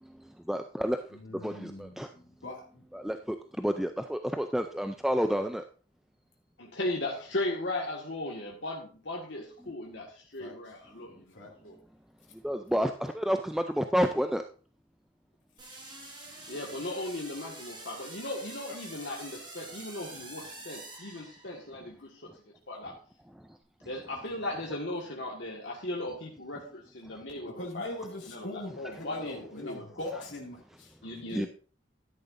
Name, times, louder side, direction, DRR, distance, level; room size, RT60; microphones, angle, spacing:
voice 1, 0.5-1.0 1.3-2.1 2.9-5.6 9.6-9.7 12.3-14.4 22.3-22.4 22.8-23.0 23.3-23.9 27.1-27.2 31.3-31.5, equal, ahead, 6 dB, 0.4 m, -30 dB
voice 2, 1.1-2.1 2.4-2.8 10.4-10.6 11.3-11.5 18.7-18.8 27.6-31.5, left 1 dB, 90° left, -1 dB, 2.4 m, -41 dB
voice 3, 6.6-11.2 11.6-11.8 16.5-22.2 22.7-22.9 23.8-27.9 28.3-29.8 30.1-30.2 31.0-31.5, left 1 dB, 70° left, -2 dB, 1.8 m, -37 dB
sound 1, 15.6-21.8, right 2 dB, 25° right, 5.9 m, -46 dB
12.5 x 10.5 x 2.6 m, 0.41 s
head